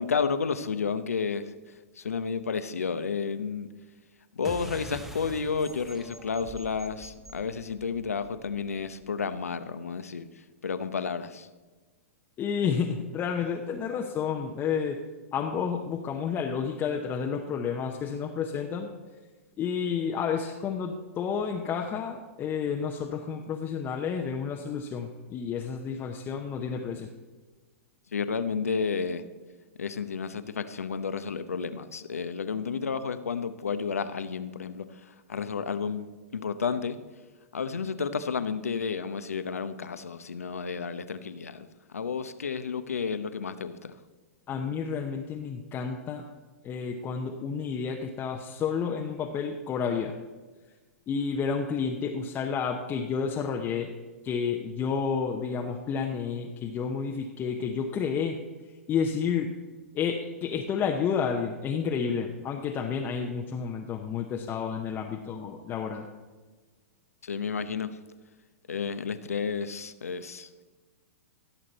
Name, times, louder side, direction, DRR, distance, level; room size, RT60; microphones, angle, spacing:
voice 1, 0.0-3.7 4.3-11.5 28.1-29.2 29.8-36.1 36.3-37.0 37.5-44.0 67.2-68.0 68.7-70.6, left 5 dB, 80° left, 11 dB, 0.8 m, -31 dB
sound 1, 4.4-9.4, right 1 dB, 5° right, 0.8 m, -46 dB
voice 2, 12.4-15.0 15.3-18.9 19.6-27.1 44.5-46.3 46.6-50.1 51.1-53.9 54.2-58.4 58.9-59.5 59.9-66.1, left 6 dB, 25° left, 1 dB, 0.9 m, -30 dB
16.0 x 7.5 x 4.1 m, 1.3 s
hypercardioid pair, 110°, 8 cm